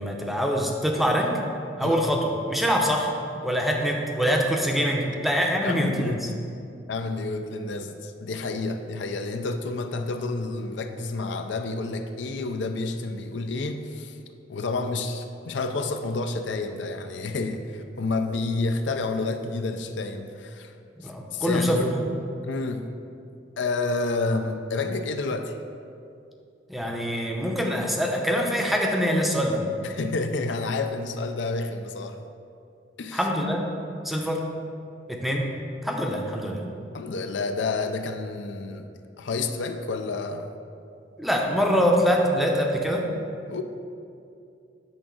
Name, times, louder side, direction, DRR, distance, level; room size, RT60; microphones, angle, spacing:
voice 1, 0.0-1.4 1.8-3.1 3.4-6.1 21.0-21.9 26.7-29.6 33.1-33.7 34.0-34.5 35.1-35.5 35.8-36.7 41.2-43.1, equal, ahead, 0 dB, 0.6 m, -24 dB
voice 2, 5.6-6.2 6.9-14.2 14.5-20.7 21.0-21.9 22.4-22.8 23.6-25.5 29.8-32.3 33.0-33.3 36.9-38.9 39.2-40.5 43.5-43.6, left 3 dB, 70° left, 7 dB, 0.4 m, -29 dB
8.2 x 3.6 x 6.2 m, 2.5 s
head